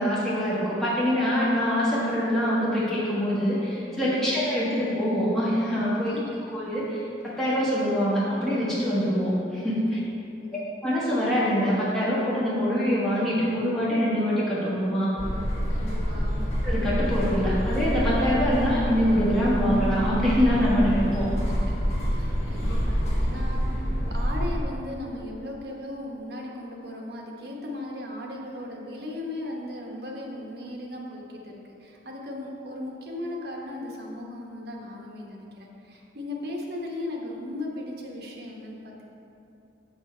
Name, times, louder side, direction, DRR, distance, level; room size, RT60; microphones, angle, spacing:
voice 1, 0.0-6.1 6.5-10.0 10.8-15.1 16.6-21.3, equal, ahead, -10 dB, 1.3 m, -24 dB
voice 2, 4.1-4.4 6.1-6.2 9.9-10.1 10.3-10.7 15.7-16.5 21.7-21.8 22.1-39.1, left 1 dB, 60° right, -1 dB, 1.0 m, -37 dB
sound 1, 15.2-24.6, equal, 35° left, 1.5 m, -27 dB
7.1 x 6.0 x 4.3 m, 2.8 s
head